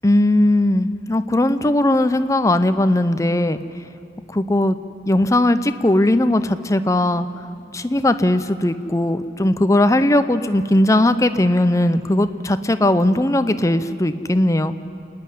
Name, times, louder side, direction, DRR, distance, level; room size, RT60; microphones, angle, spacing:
voice 1, 0.0-3.6 4.3-4.8 5.1-7.3 7.7-14.7, left 1 dB, 20° left, 11 dB, 0.5 m, -18 dB
28.5 x 9.6 x 9.9 m, 2.8 s
head